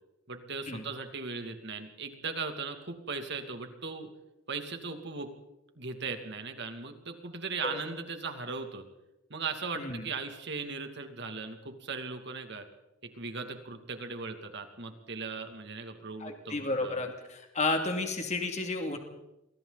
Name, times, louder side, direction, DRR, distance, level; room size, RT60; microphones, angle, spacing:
voice 1, 0.3-4.1 4.5-5.3 5.8-8.8 9.3-12.6 13.2-17.0, right 4 dB, 60° right, 6 dB, 2.7 m, -38 dB
voice 2, 9.8-10.1 16.2-19.0, left 2 dB, 35° left, 4 dB, 2.6 m, -32 dB
29.0 x 23.0 x 4.2 m, 0.93 s
head